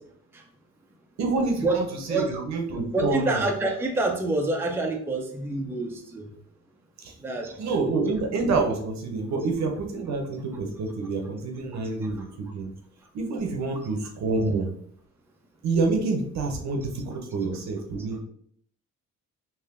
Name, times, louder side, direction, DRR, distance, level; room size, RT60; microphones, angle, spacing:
voice 1, 1.2-3.4 7.0-7.1 7.6-12.7 13.1-14.7 15.6-18.2, right 3 dB, 65° right, 3 dB, 0.7 m, -27 dB
voice 2, 2.9-6.2 7.2-7.8, right 2 dB, 10° right, 2 dB, 0.5 m, -27 dB
3.5 x 2.5 x 2.5 m, 0.64 s
cardioid pair, 90°, 30 cm